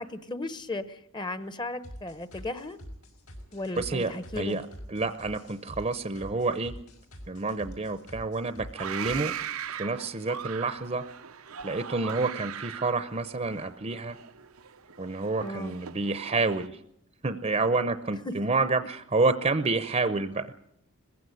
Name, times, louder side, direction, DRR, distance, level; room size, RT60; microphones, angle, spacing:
voice 1, 0.0-2.8 3.5-4.6 15.4-15.7 18.3-18.4, left 2 dB, 20° left, 14 dB, 0.9 m, -35 dB
sound 1, 1.8-9.5, equal, 85° left, 5.6 m, -45 dB
voice 2, 3.8-4.6 4.9-6.7 7.3-9.3 9.8-11.0 11.6-14.2 15.0-16.8 17.2-20.6, right 3 dB, 30° right, 11 dB, 0.7 m, -28 dB
sound 2, 8.8-16.7, right 8 dB, 85° right, 0.8 m, -39 dB
20.5 x 15.5 x 9.7 m, 0.77 s
head